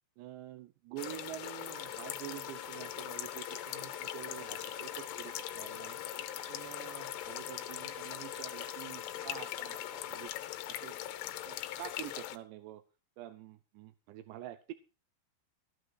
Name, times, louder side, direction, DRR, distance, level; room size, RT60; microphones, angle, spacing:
voice 1, 0.2-10.3 10.7-11.0 11.4-12.8 13.2-14.7, right 14 dB, 75° right, 11 dB, 2.8 m, -47 dB
sound 1, 1.0-12.4, left 13 dB, 80° left, 3.4 m, -41 dB
sound 2, 1.7-10.3, right 3 dB, 20° right, 1.2 m, -53 dB
14.0 x 9.0 x 4.7 m, 0.33 s
omnidirectional pair, 5.6 m